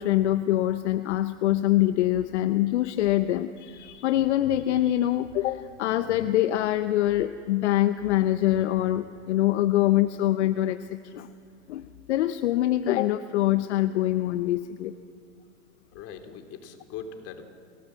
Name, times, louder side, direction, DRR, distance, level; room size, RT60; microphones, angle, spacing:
voice 1, 0.0-11.3 11.7-14.9, left 14 dB, 65° left, 11 dB, 1.0 m, -24 dB
voice 2, 15.9-17.4, left 7 dB, 40° left, 6 dB, 3.3 m, -40 dB
28.5 x 18.5 x 7.8 m, 2.4 s
hypercardioid pair, 105°, 37 cm